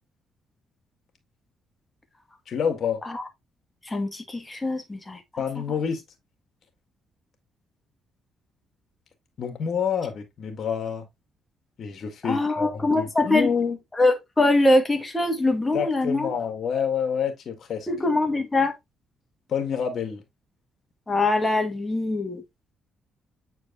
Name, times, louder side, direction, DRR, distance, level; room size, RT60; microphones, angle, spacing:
voice 1, 2.5-3.0 5.4-6.0 9.4-11.1 11.8-13.8 15.7-17.9 19.5-20.2, left 7 dB, 60° left, 1.8 m, -28 dB
voice 2, 3.8-5.4 12.2-13.5 14.0-16.3 17.9-18.7 21.1-22.4, left 2 dB, 15° left, 1.7 m, -23 dB
8.2 x 4.6 x 2.6 m
cardioid pair, 90°, 0 cm